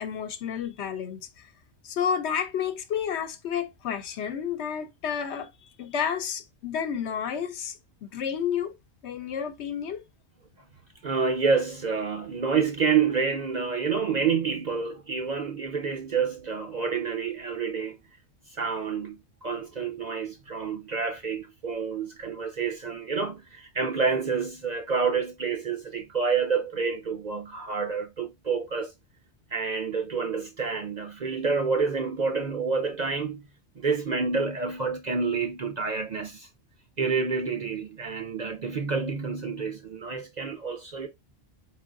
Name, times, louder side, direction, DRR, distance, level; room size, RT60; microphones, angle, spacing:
voice 1, 0.0-1.5 1.8-5.5 5.8-8.7 9.0-10.0, left 8 dB, 75° left, 0.9 m, -31 dB
voice 2, 11.0-18.0 18.5-28.9 29.5-33.4 33.8-36.5 37.0-41.1, right 5 dB, 50° right, 0.5 m, -28 dB
4.6 x 3.6 x 2.4 m
omnidirectional pair, 1.2 m